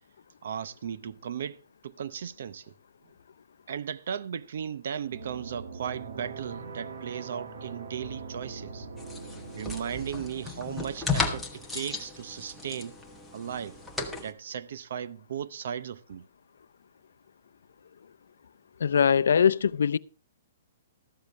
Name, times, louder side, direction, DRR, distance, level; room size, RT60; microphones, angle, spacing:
voice 1, 0.4-2.7 3.7-8.9 9.6-13.0 13.3-13.8 14.2-16.3, right 8 dB, 55° right, 0.7 m, -36 dB
sound 1, 5.0-11.0, right 4 dB, 75° right, 2.0 m, -42 dB
sound 2, 9.0-14.3, left 3 dB, ahead, 1.1 m, -35 dB
voice 2, 18.8-20.0, left 7 dB, 80° left, 0.5 m, -22 dB
13.5 x 13.5 x 3.2 m
hypercardioid pair, 175°, 0 cm